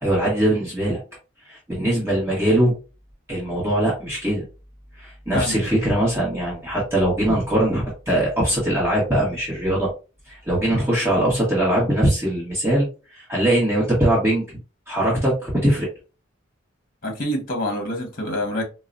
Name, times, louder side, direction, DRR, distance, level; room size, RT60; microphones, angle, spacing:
voice 1, 0.0-1.0 1.4-2.7 3.3-4.4 5.0-9.9 10.3-12.9 13.1-14.5 14.9-15.9, right 1 dB, 10° right, 1.2 m, -21 dB
voice 2, 17.0-18.6, left 1 dB, 45° left, 0.9 m, -26 dB
4.7 x 2.1 x 2.5 m
head